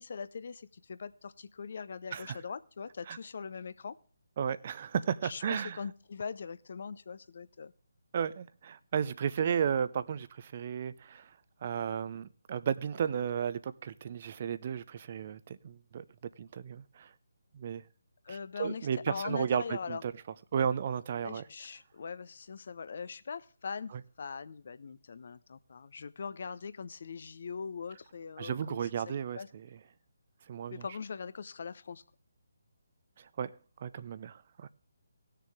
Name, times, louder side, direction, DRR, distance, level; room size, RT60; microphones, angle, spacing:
voice 1, 0.0-3.9 5.2-7.7 18.2-20.0 21.2-23.9 24.2-28.8 29.4-29.5 30.7-32.0, left 5 dB, 50° left, 0.7 m, -41 dB
voice 2, 4.4-5.8 8.1-11.3 11.6-16.0 16.4-17.1 17.5-17.8 18.3-20.1 20.5-21.4 28.4-29.7 30.5-30.8 33.2-33.5 33.8-34.7, right 8 dB, 40° right, 0.6 m, -34 dB
18.0 x 6.7 x 3.5 m
figure-of-eight pair, 145°, 0 cm